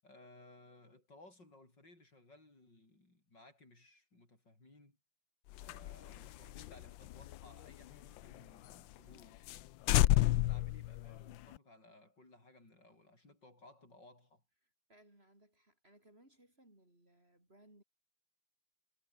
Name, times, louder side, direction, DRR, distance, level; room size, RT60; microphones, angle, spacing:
voice 1, 0.0-5.0 5.6-9.5 9.9-14.4, left 2 dB, 55° left, 8.0 m, -60 dB
sound 1, 5.5-8.4 8.7-8.8 9.1-9.2 9.5-9.6 9.9-11.6, left 16 dB, 75° left, 1.3 m, -31 dB
voice 2, 14.6-17.8, right 1 dB, 25° right, 7.0 m, -65 dB
omnidirectional pair, 2.3 m